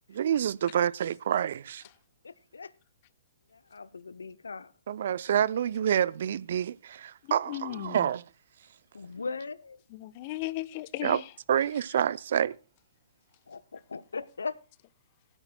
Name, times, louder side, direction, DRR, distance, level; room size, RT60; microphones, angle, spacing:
voice 1, 0.1-1.8 4.9-8.2 11.0-11.2 11.5-12.6, right 9 dB, 60° right, 0.5 m, -27 dB
voice 2, 2.2-2.7 3.5-4.7 8.9-9.8 13.5-14.6, left 4 dB, 75° left, 0.6 m, -39 dB
voice 3, 7.2-8.1 9.9-11.3, left 16 dB, 40° left, 0.7 m, -36 dB
20.0 x 9.9 x 2.2 m
figure-of-eight pair, 120°, 0 cm